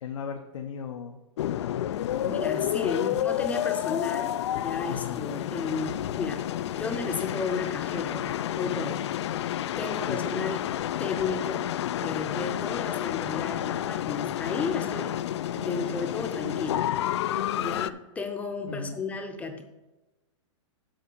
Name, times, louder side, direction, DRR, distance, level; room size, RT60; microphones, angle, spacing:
voice 1, 0.0-1.2 2.1-2.7 4.9-5.2 10.1-10.2 18.7-19.0, left 6 dB, 85° left, 3 dB, 1.0 m, -37 dB
sound 1, 1.4-17.9, left 12 dB, 60° left, 0.4 m, -30 dB
voice 2, 2.1-9.4 9.8-10.7 11.0-11.7 12.0-15.2 15.5-17.3 17.6-19.6, left 4 dB, 10° left, 6 dB, 0.7 m, -34 dB
7.7 x 5.5 x 6.8 m, 1.1 s
hypercardioid pair, 155°, 16 cm